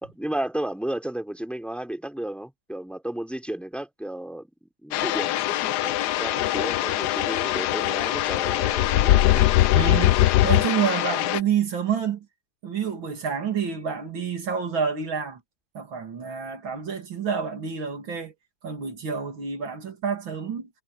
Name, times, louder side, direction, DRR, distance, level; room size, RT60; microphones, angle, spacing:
voice 1, 0.0-9.6, right 1 dB, ahead, 3.5 m, -33 dB
sound 1, 4.9-11.4, left 14 dB, 70° left, 1.0 m, -22 dB
voice 2, 9.7-12.3 12.6-15.4 15.7-18.3 18.6-20.7, right 7 dB, 80° right, 3.4 m, -28 dB
omnidirectional pair, 2.1 m